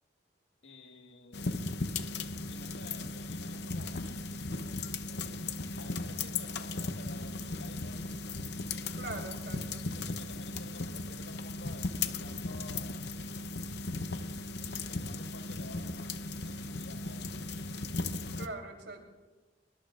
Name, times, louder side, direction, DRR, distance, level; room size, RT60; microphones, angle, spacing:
voice 1, 0.6-1.6 2.5-4.0 5.8-8.0 9.6-13.1 14.9-16.1 16.4-17.3, left 2 dB, 85° left, 4 dB, 1.7 m, -52 dB
sound 1, 1.3-18.5, left 3 dB, 65° left, 0.7 m, -37 dB
voice 2, 8.9-9.8 18.4-19.1, right 2 dB, 80° right, 2 dB, 3.4 m, -42 dB
24.0 x 23.0 x 2.5 m, 1.2 s
head